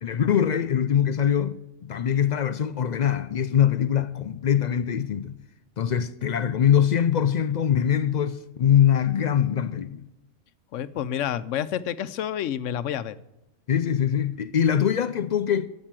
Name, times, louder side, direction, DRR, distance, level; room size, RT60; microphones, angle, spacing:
voice 1, 0.0-5.4 5.8-10.1 13.7-15.7, left 9 dB, 60° left, 0.4 m, -23 dB
voice 2, 10.7-13.2, left 10 dB, 85° left, 1.0 m, -29 dB
13.0 x 7.5 x 7.4 m
omnidirectional pair, 1.3 m